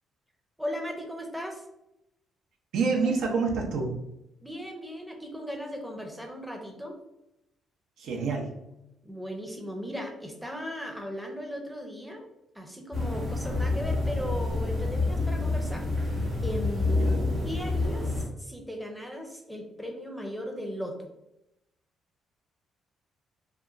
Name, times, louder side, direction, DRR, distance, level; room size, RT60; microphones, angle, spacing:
voice 1, 0.6-1.6 4.4-7.0 9.0-12.3 12.5-15.9 16.4-17.2 17.4-21.1, equal, 5° right, 2 dB, 0.5 m, -37 dB
voice 2, 2.7-3.9 8.0-8.6 17.0-17.2, right 4 dB, 80° right, 0 dB, 0.5 m, -27 dB
sound 1, 12.9-18.2, left 2 dB, 45° right, 0.9 m, -28 dB
2.8 x 2.2 x 2.3 m, 0.87 s
cardioid pair, 90°, 0 cm